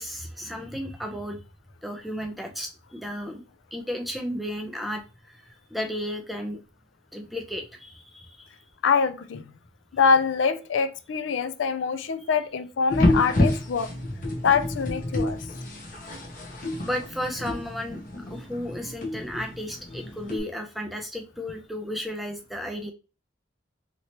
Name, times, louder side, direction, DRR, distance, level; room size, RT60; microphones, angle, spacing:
voice 1, 0.0-1.4 1.8-3.4 3.7-6.6 7.1-8.6 16.9-18.0 18.3-22.9, equal, ahead, 0.4 m, -34 dB
voice 2, 8.8-9.4 9.9-13.9 14.4-15.4, left 5 dB, 70° left, 0.4 m, -24 dB
sound 1, 12.9-20.4, left 1 dB, 40° left, 0.8 m, -28 dB
3.1 x 2.9 x 2.8 m
head